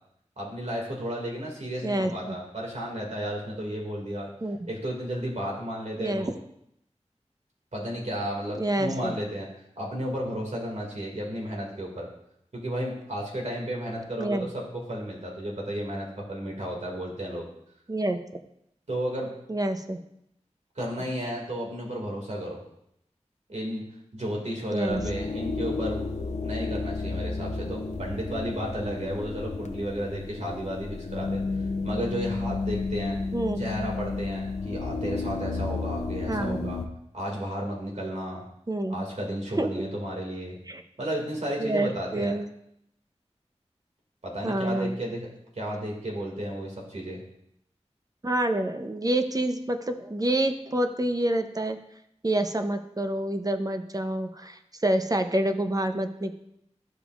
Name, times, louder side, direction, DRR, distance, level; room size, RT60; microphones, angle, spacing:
voice 1, 0.4-4.3 4.7-6.3 7.7-9.5 9.8-12.1 12.5-17.5 18.9-19.3 20.8-22.6 23.5-23.8 24.1-26.0 26.4-31.4 31.8-33.2 33.6-36.8 37.1-38.4 38.9-40.5 41.0-42.3 44.2-45.3 45.5-47.2, equal, 80° right, -2 dB, 2.2 m, -33 dB
voice 2, 8.5-9.1 14.2-14.5 17.9-18.2 19.5-20.0 24.7-25.0 33.3-33.6 36.3-36.7 38.7-38.9 39.6-39.8 40.7-40.8 41.6-42.5 44.4-45.0 48.2-51.8 52.2-56.4, right 1 dB, 30° right, 7 dB, 0.7 m, -27 dB
sound 1, 24.9-36.9, left 3 dB, 75° left, 0.7 m, -32 dB
13.0 x 5.2 x 2.5 m, 0.76 s
wide cardioid pair, 45°, 12 cm